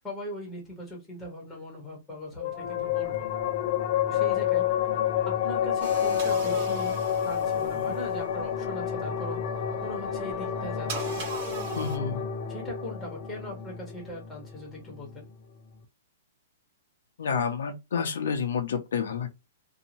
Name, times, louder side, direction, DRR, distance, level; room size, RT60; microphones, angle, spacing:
voice 1, 0.0-3.3 4.1-4.7 5.2-9.4 9.8-11.2 11.9-12.2 12.5-15.3, left 1 dB, 5° left, 1.1 m, -40 dB
sound 1, 2.4-15.3, left 9 dB, 35° left, 0.5 m, -29 dB
sound 2, 5.8-8.3 10.9-12.0, right 4 dB, 40° right, 1.2 m, -38 dB
voice 2, 11.8-12.2 17.2-19.3, left 6 dB, 80° left, 0.7 m, -29 dB
2.7 x 2.2 x 2.8 m
hypercardioid pair, 170°, 0 cm